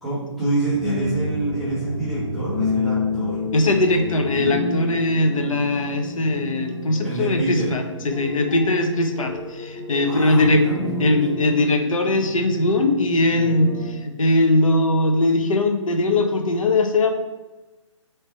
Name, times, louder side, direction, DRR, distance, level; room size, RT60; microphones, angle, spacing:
voice 1, 0.0-3.5 7.0-7.7 10.0-11.2, right 2 dB, ahead, -12 dB, 0.4 m, -27 dB
sound 1, 0.6-13.9, left 2 dB, 20° left, 1.1 m, -30 dB
voice 2, 3.5-10.6 11.0-17.1, left 2 dB, 90° left, 5 dB, 0.8 m, -20 dB
3.2 x 3.2 x 4.2 m, 1.1 s
hypercardioid pair, 170°, 17 cm